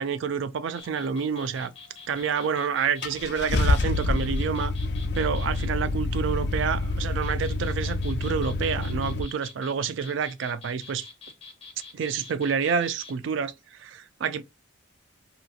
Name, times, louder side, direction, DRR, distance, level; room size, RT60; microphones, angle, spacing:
voice 1, 0.0-1.7 2.1-4.7 5.1-11.1 11.9-14.4, right 6 dB, 65° right, 0.3 m, -28 dB
sound 1, 0.7-5.7 7.0-13.1, left 4 dB, 30° left, 0.9 m, -46 dB
Car / Engine starting, 2.3-2.4 3.0-9.2, left 2 dB, 50° left, 0.3 m, -27 dB
2.9 x 2.6 x 2.4 m
head